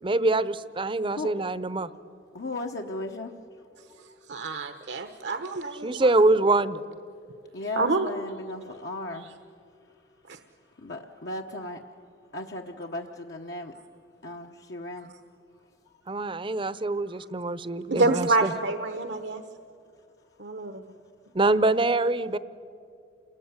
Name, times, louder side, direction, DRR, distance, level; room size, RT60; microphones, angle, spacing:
voice 1, 0.0-1.9 5.8-6.8 16.1-18.5 21.3-22.4, right 2 dB, 30° right, 16 dB, 0.7 m, -24 dB
voice 2, 2.3-3.3 3.7-3.8 7.5-9.3 10.8-11.8 12.3-13.7 14.2-15.1, left 2 dB, 65° left, 1 dB, 1.2 m, -36 dB
voice 3, 4.3-6.1 7.8-8.1 10.3-10.4 17.9-19.4 20.4-20.8, right 3 dB, 70° right, 8 dB, 1.0 m, -27 dB
28.5 x 20.5 x 9.6 m, 2.5 s
head